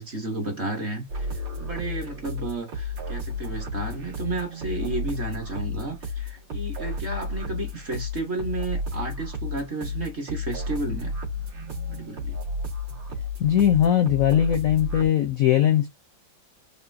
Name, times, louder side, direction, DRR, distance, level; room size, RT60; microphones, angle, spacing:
voice 1, 0.0-11.1 11.9-12.4, right 2 dB, 45° right, 1.0 m, -32 dB
sound 1, 1.1-15.1, left 2 dB, 75° right, 2.4 m, -32 dB
voice 2, 13.4-15.9, left 10 dB, 70° left, 0.8 m, -20 dB
5.3 x 2.4 x 2.5 m
omnidirectional pair, 2.1 m